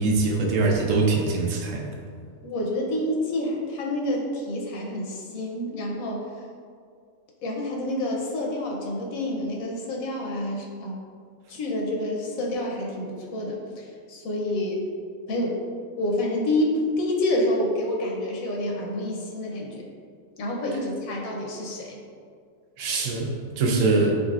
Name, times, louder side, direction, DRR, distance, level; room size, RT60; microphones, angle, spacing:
voice 1, 0.0-1.9 22.8-24.1, right 3 dB, 75° right, 0 dB, 0.9 m, -23 dB
voice 2, 2.4-6.3 7.4-11.0 11.5-14.8 15.3-15.6 16.0-19.8 20.4-22.0, left 1 dB, 85° left, -1 dB, 1.1 m, -28 dB
3.9 x 3.8 x 2.4 m, 2.2 s
omnidirectional pair, 1.4 m